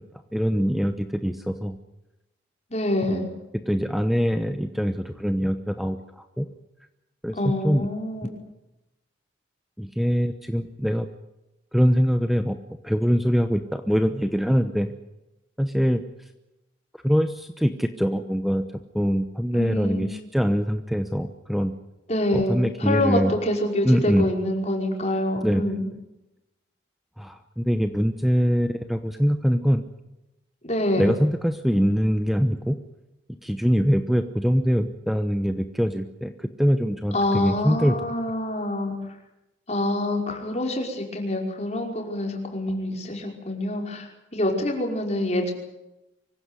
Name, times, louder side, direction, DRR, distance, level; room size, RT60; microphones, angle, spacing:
voice 1, 0.3-1.8 3.7-6.5 7.2-7.4 7.6-7.9 9.8-11.1 11.7-12.6 12.8-14.9 15.6-16.0 17.0-18.6 18.9-21.7 22.3-23.3 23.8-24.3 25.4-25.7 27.2-29.8 31.0-32.8 33.4-38.0, equal, ahead, 8 dB, 0.9 m, -23 dB
voice 2, 2.7-3.3 7.3-8.3 19.5-20.0 22.1-25.9 30.6-31.1 37.1-38.9 39.7-45.5, left 1 dB, 35° left, 1 dB, 5.3 m, -26 dB
25.0 x 16.0 x 9.7 m, 0.95 s
head